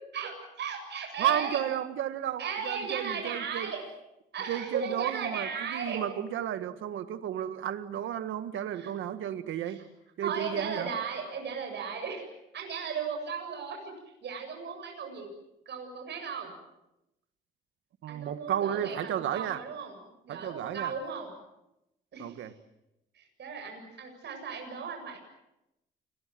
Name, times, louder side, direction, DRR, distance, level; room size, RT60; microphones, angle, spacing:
voice 1, 0.1-1.6 2.4-3.8 4.3-6.0 8.7-8.9 9.7-9.8 10.2-12.3 12.5-13.9 14.2-15.3 15.7-16.5 18.1-19.9 20.2-21.3 22.1-22.5 23.1-25.2, right 6 dB, 60° right, 3 dB, 7.7 m, -36 dB
voice 2, 1.2-3.7 4.5-9.8 10.2-10.9 18.0-19.6 20.3-20.9 22.2-22.5, right 10 dB, 80° right, 10 dB, 1.7 m, -33 dB
29.5 x 22.5 x 7.7 m, 0.90 s
cardioid pair, 90°, 20 cm